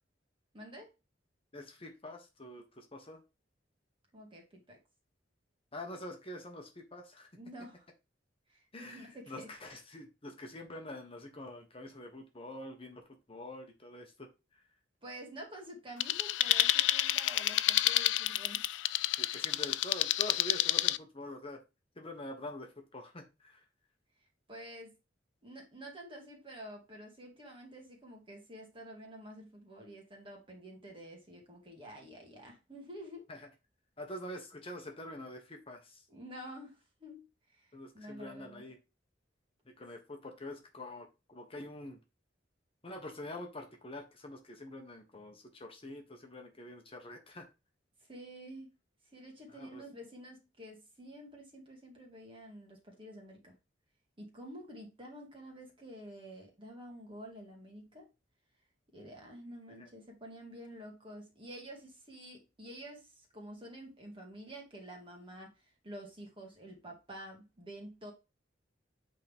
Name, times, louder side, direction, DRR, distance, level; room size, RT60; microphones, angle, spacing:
voice 1, 0.5-0.9 4.1-4.8 7.3-7.9 8.5-9.5 15.0-18.7 24.5-25.0 25.4-33.3 36.1-38.7 48.0-48.7 49.1-53.6 54.2-58.1 58.9-68.1, equal, 30° right, 2.2 m, -49 dB
voice 2, 1.5-3.2 5.7-7.3 8.7-14.6 19.2-21.6 22.0-23.6 33.3-33.5 34.0-36.0 37.7-38.8 39.6-42.0 42.8-47.5 49.5-49.8 59.8-59.9, left 1 dB, 30° left, 1.2 m, -46 dB
sound 1, 16.0-21.0, left 15 dB, 80° left, 0.3 m, -29 dB
8.4 x 3.8 x 3.6 m
head